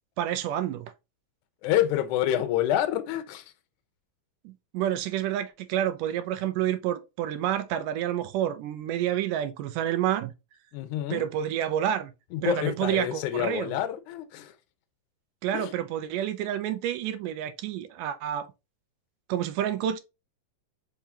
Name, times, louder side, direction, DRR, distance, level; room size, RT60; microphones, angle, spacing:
voice 1, 0.2-0.9 4.5-10.3 11.1-12.1 12.4-13.7 15.4-18.5 19.3-20.0, right 11 dB, 80° right, 1.9 m, -29 dB
voice 2, 1.6-3.5 10.7-11.3 12.3-14.5 15.5-15.7, left 12 dB, 75° left, 1.9 m, -27 dB
5.5 x 3.6 x 2.7 m
omnidirectional pair, 4.2 m